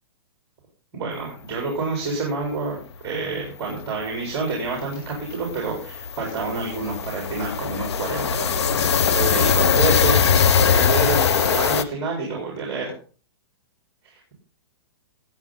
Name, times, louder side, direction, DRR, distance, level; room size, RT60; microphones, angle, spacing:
voice 1, 0.9-2.8 3.0-12.9, right 4 dB, 20° right, -1 dB, 4.0 m, -28 dB
sound 1, 3.4-3.5 3.8-4.0 4.3-11.8, left 7 dB, 85° left, 1.0 m, -21 dB
18.0 x 8.3 x 3.9 m, 0.38 s
hypercardioid pair, 170°, 14 cm